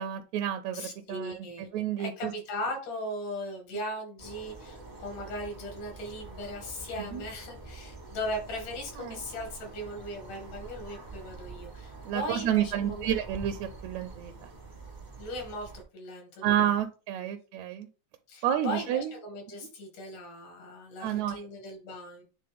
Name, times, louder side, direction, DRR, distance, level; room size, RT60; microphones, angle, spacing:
voice 1, 0.0-2.3 7.1-7.2 9.0-9.1 12.0-14.5 16.4-17.9 18.4-19.1 21.0-21.4, right 10 dB, 80° right, 7 dB, 1.7 m, -30 dB
voice 2, 0.7-1.7 2.0-13.2 15.2-16.8 17.2-17.3 18.3-22.2, left 1 dB, 85° left, 2 dB, 3.6 m, -38 dB
sound 1, 4.2-15.8, right 3 dB, 55° right, 0.5 m, -46 dB
8.5 x 3.5 x 3.4 m, 0.35 s
omnidirectional pair, 3.5 m